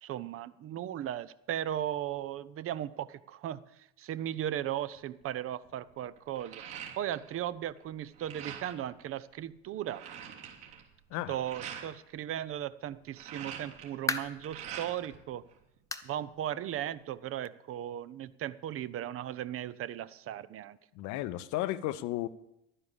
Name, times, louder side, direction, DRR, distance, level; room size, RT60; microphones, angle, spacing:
voice 1, 0.0-6.6 7.0-10.0 11.3-15.4 16.0-20.8, right 11 dB, 40° right, 16 dB, 0.7 m, -37 dB
sound 1, 4.9-5.2 5.6-7.4 7.7-8.9 9.4-9.5 9.7-11.9 12.9-15.2 15.5-16.4, right 8 dB, 60° right, 3.3 m, -45 dB
sound 2, 13.4-14.5 15.0-15.1 15.9-16.2 16.5-16.6 17.1-17.2 18.3-18.4, left 2 dB, 10° left, 1.2 m, -36 dB
voice 2, 20.9-22.3, left 15 dB, 55° left, 15 dB, 0.8 m, -33 dB
12.0 x 9.9 x 6.9 m, 0.84 s
figure-of-eight pair, 65°, 35 cm